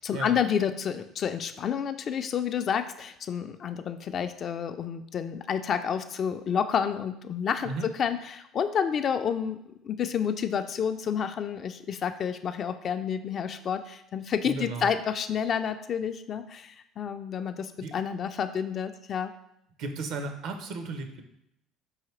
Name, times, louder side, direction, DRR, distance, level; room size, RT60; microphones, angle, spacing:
voice 1, 0.0-19.3, left 7 dB, 50° left, 9 dB, 0.3 m, -30 dB
voice 2, 14.5-14.9 17.8-17.9 19.8-21.2, right 3 dB, 65° right, 6 dB, 0.6 m, -35 dB
4.7 x 2.8 x 3.1 m, 0.79 s
hypercardioid pair, 70°, 0 cm